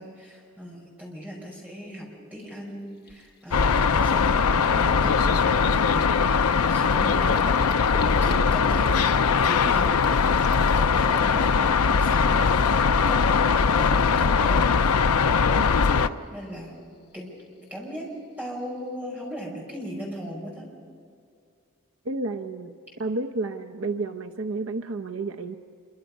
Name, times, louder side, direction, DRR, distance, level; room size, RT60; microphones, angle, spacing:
voice 1, 0.0-6.1 6.4-7.8 8.2-8.9 9.4-12.4 12.8-14.7 15.8-16.7 17.1-17.3 17.7-18.1 18.4-20.7, equal, 5° right, -3 dB, 5.6 m, -38 dB
Gurgling, 2.5-2.6 3.1-3.3 3.7-3.9 4.1-12.2 12.5-13.2, left 2 dB, 45° left, 1.0 m, -41 dB
sound 1, 3.5-16.1, left 5 dB, 85° left, 0.6 m, -21 dB
voice 2, 22.0-22.7 23.0-25.5, right 3 dB, 65° right, 6 dB, 0.8 m, -31 dB
26.5 x 24.0 x 5.4 m, 2.3 s
head